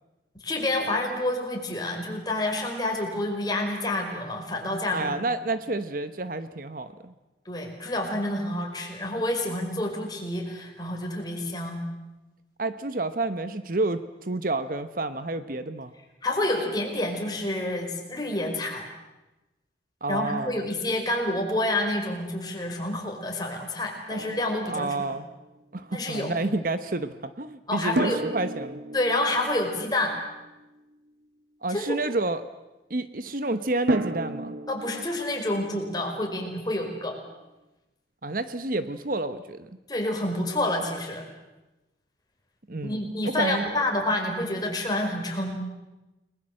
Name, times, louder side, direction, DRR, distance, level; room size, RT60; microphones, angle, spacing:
voice 1, 0.4-5.2 7.5-11.8 16.2-18.9 20.1-24.9 25.9-26.3 27.7-28.2 28.9-30.2 31.7-32.0 34.7-37.2 39.9-41.3 42.8-45.6, left 1 dB, 20° left, 2 dB, 5.0 m, -28 dB
voice 2, 4.9-7.1 12.6-15.9 20.0-20.6 24.7-25.3 25.7-28.8 31.6-32.4 32.9-34.5 38.2-39.7 42.7-43.8, right 2 dB, 50° right, 11 dB, 1.1 m, -29 dB
Drum, 24.1-25.5 28.0-30.9 33.9-36.7, right 1 dB, 70° right, 1.5 m, -34 dB
30.0 x 20.5 x 7.7 m, 1.0 s
head